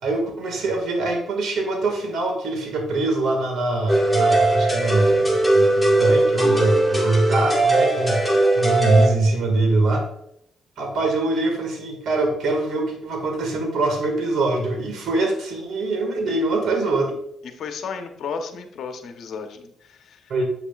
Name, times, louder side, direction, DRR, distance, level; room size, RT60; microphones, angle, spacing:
voice 1, 0.0-10.0 10.8-17.1 20.3-20.4, right 2 dB, 70° right, 3 dB, 2.0 m, -23 dB
sound 1, 3.9-9.1, right 2 dB, 10° right, 2.0 m, -19 dB
voice 2, 17.5-20.2, left 5 dB, 65° left, 6 dB, 1.0 m, -34 dB
7.9 x 7.1 x 2.5 m, 0.72 s
cardioid pair, 90°, 0 cm